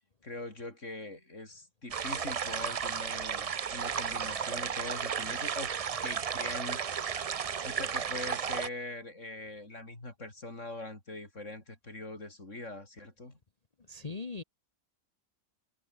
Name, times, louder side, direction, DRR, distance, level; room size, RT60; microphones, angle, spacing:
voice 1, 0.2-5.7 6.0-7.2 7.6-13.4, left 2 dB, 55° left, 6.0 m, -42 dB
sound 1, 1.9-8.7, right 7 dB, 70° right, 0.3 m, -34 dB
voice 2, 13.9-14.4, left 4 dB, 30° left, 1.1 m, -39 dB
omnidirectional pair, 1.5 m